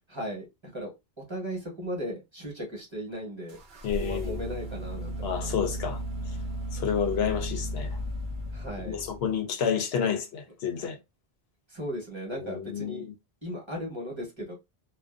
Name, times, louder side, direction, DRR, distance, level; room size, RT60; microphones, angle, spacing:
voice 1, 0.1-3.6 4.0-5.6 8.5-9.0 10.8-10.9 11.7-13.1 13.4-14.5, equal, 30° right, 1.0 m, -37 dB
sound 1, 3.5-9.4, equal, 55° right, 0.7 m, -35 dB
voice 2, 3.8-4.4 5.2-6.0 6.7-8.0 8.9-11.0 12.3-13.1, left 7 dB, 80° left, 0.8 m, -30 dB
2.5 x 2.2 x 2.4 m
omnidirectional pair, 1.0 m